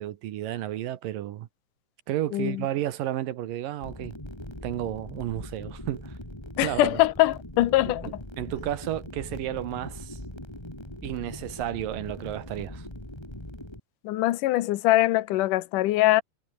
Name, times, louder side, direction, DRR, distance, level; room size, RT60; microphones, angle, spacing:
voice 1, 0.0-1.5 2.1-4.2 4.6-6.1 6.6-7.0 7.9-10.2 11.0-12.9, right 13 dB, 75° right, 2.8 m, -32 dB
voice 2, 2.3-2.7 6.6-8.1 14.0-16.2, left 16 dB, 70° left, 2.5 m, -22 dB
sound 1, 3.8-13.8, left 1 dB, 5° left, 4.4 m, -41 dB
omnidirectional pair, 4.0 m